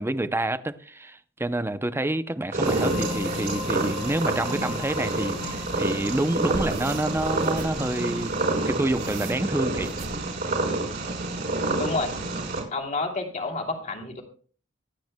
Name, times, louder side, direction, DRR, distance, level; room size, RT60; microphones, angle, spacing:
voice 1, 0.0-8.3 8.6-9.9, right 1 dB, 10° right, 0.6 m, -28 dB
Purr, 2.5-12.6, right 2 dB, 50° right, 5.3 m, -28 dB
sound 1, 2.6-10.4, left 5 dB, 90° left, 1.7 m, -39 dB
sound 2, 2.7-3.5 4.8-4.9 5.4-5.8 6.3-7.9 8.6-10.2 11.6-12.1, right 1 dB, 85° right, 2.3 m, -40 dB
voice 2, 11.8-12.1 12.7-14.2, left 3 dB, 40° left, 2.8 m, -29 dB
25.0 x 9.0 x 2.2 m
head